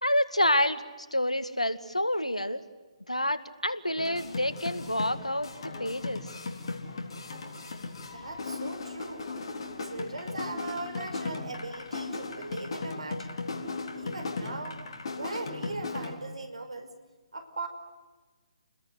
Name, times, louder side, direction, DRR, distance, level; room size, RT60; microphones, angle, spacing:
voice 1, 0.0-2.6 3.1-5.5 5.8-6.3, left 1 dB, 85° left, 12 dB, 2.0 m, -28 dB
sound 1, 4.0-16.2, left 3 dB, 50° left, 3.9 m, -37 dB
voice 2, 8.1-9.3 9.8-13.3 14.0-14.8 15.1-16.9 17.3-17.7, right 2 dB, 70° right, 8 dB, 5.1 m, -39 dB
29.5 x 21.5 x 8.0 m, 1.3 s
figure-of-eight pair, 135°, 3 cm